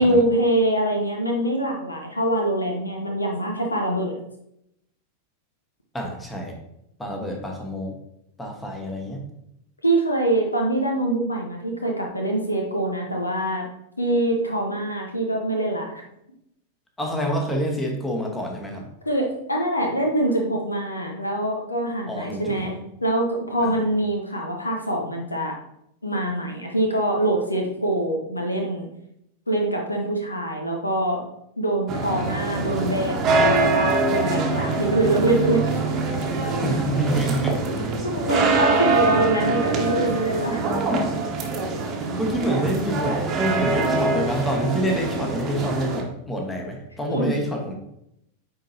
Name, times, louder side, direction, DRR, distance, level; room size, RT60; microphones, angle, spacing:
voice 1, 0.0-4.2 9.8-13.6 14.0-16.0 19.0-25.5 26.0-28.8 29.5-31.2 31.6-35.6 38.0-40.6 47.1-47.4, right 1 dB, 80° left, 1 dB, 1.0 m, -24 dB
voice 2, 5.9-6.5 7.0-7.9 8.4-9.2 17.0-18.9 22.1-22.7 23.6-23.8 36.6-37.6 42.2-47.7, right 1 dB, 10° left, 1 dB, 1.2 m, -27 dB
sound 1, 31.9-46.0, right 3 dB, 30° right, 1.1 m, -24 dB
8.9 x 3.8 x 2.8 m, 0.79 s
figure-of-eight pair, 90°, 0 cm